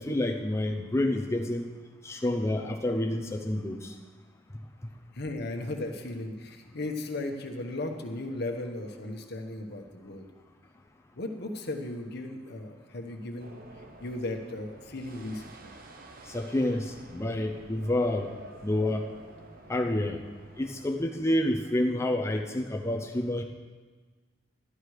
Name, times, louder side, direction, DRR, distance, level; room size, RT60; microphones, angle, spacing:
voice 1, 0.0-1.6 2.0-3.9 16.3-18.3 18.6-19.1 19.7-20.2 20.6-23.4, left 1 dB, 15° left, 1 dB, 0.7 m, -28 dB
voice 2, 5.1-10.3 11.2-13.6 14.0-15.4, left 2 dB, 60° left, 4 dB, 1.2 m, -36 dB
sound 1, 13.4-20.9, right 2 dB, 50° right, 1.0 m, -50 dB
12.5 x 11.0 x 4.8 m, 1.4 s
head